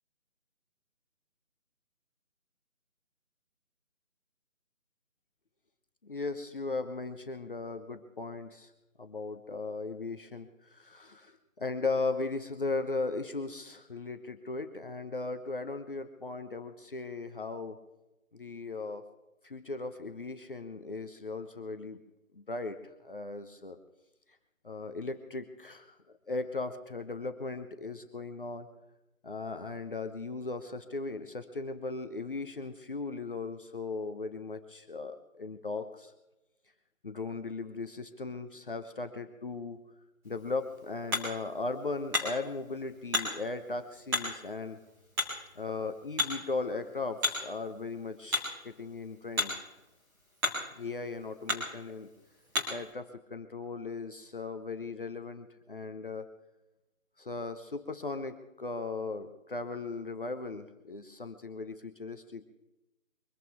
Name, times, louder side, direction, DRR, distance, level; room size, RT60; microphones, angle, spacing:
voice 1, 6.0-8.7 9.0-17.8 18.3-19.1 19.4-22.0 22.3-23.8 24.6-26.0 26.3-28.7 29.2-36.1 37.0-39.8 40.2-44.8 45.5-49.5 50.7-52.1 52.7-56.3 57.2-62.5, left 3 dB, 40° left, 8 dB, 1.0 m, -37 dB
Hammer, 40.2-52.9, left 2 dB, 5° right, 2.2 m, -37 dB
23.0 x 15.5 x 3.5 m, 0.96 s
figure-of-eight pair, 160°, 41 cm